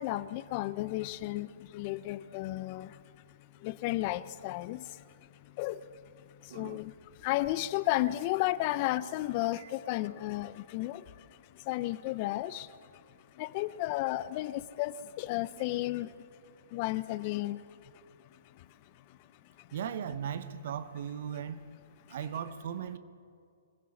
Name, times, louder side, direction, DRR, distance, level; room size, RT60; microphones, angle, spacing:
voice 1, 0.0-3.2 3.6-5.0 5.4-5.9 6.3-6.9 7.2-12.9 13.3-16.1 16.7-18.0 18.3-18.6 19.1-19.2 19.6-19.7, left 16 dB, 40° left, 0.6 m, -34 dB
voice 2, 6.5-6.8 9.6-9.7 19.7-21.7 22.1-23.0, right 8 dB, 55° right, 1.1 m, -37 dB
23.0 x 16.0 x 7.2 m
hypercardioid pair, 125°, 0 cm